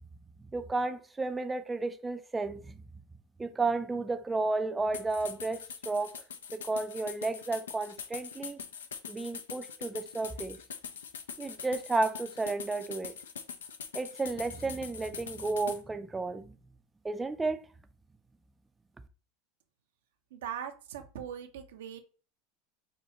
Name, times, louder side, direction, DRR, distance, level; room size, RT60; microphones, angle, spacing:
voice 1, 0.5-2.8 3.4-6.2 6.5-8.6 9.1-10.6 11.4-13.1 13.9-16.5 17.0-17.7, right 3 dB, 15° right, 0.4 m, -32 dB
sound 1, 4.9-15.8, left 7 dB, 90° left, 0.4 m, -43 dB
voice 2, 20.3-22.0, right 9 dB, 80° right, 0.6 m, -40 dB
4.4 x 2.3 x 2.8 m
hypercardioid pair, 90°, 0 cm